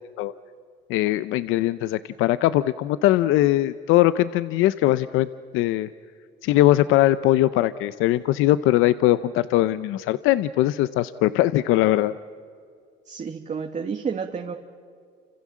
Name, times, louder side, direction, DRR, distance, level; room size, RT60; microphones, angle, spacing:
voice 1, 0.9-5.3 5.5-5.9 6.4-12.1, left 15 dB, 90° left, 15 dB, 0.7 m, -20 dB
voice 2, 13.1-14.6, right 6 dB, 35° right, 4 dB, 1.7 m, -30 dB
29.5 x 26.5 x 7.5 m, 2.2 s
cardioid pair, 100°, 20 cm